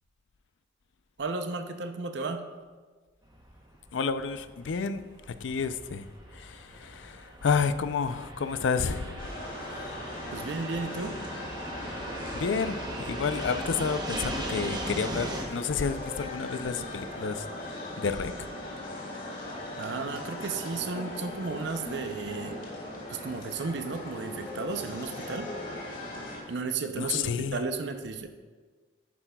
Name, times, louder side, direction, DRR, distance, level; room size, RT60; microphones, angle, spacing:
voice 1, 1.2-2.5 10.3-11.2 19.8-22.6 23.1-25.5 26.5-28.3, right 4 dB, 65° right, 7 dB, 0.6 m, -34 dB
Fixed-wing aircraft airplane, 3.2-15.4, right 1 dB, 20° right, 0.8 m, -39 dB
voice 2, 3.9-9.3 12.3-18.5 26.9-27.6, left 5 dB, 80° left, 12 dB, 0.4 m, -30 dB
sound 1, 9.2-26.4, left 1 dB, 45° left, 2.0 m, -39 dB
10.5 x 9.8 x 2.3 m, 1.4 s
head